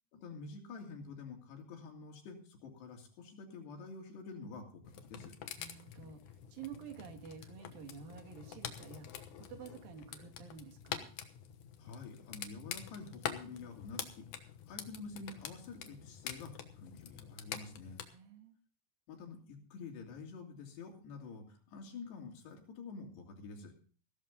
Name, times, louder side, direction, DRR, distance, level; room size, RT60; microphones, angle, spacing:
voice 1, 0.1-5.3 11.8-18.0 19.1-23.7, left 4 dB, 85° left, 2 dB, 5.0 m, -48 dB
sound 1, 4.8-18.1, left 9 dB, 65° left, 2.2 m, -46 dB
voice 2, 5.6-11.1 18.1-18.5, right 7 dB, 65° right, 5 dB, 3.6 m, -50 dB
16.0 x 13.0 x 3.9 m, 0.41 s
omnidirectional pair, 4.7 m